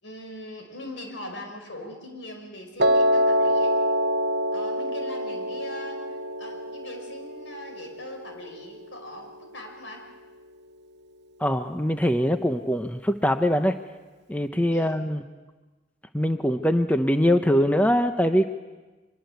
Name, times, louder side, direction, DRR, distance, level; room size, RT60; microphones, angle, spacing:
voice 1, 0.0-3.8 4.5-10.0 14.7-15.0, left 1 dB, 80° left, 4 dB, 5.3 m, -41 dB
Piano, 2.8-8.9, equal, 55° right, 1.1 m, -25 dB
voice 2, 11.4-13.7 14.3-15.2 16.1-18.5, equal, 10° left, 7 dB, 0.7 m, -22 dB
24.0 x 22.0 x 8.1 m, 1.2 s
head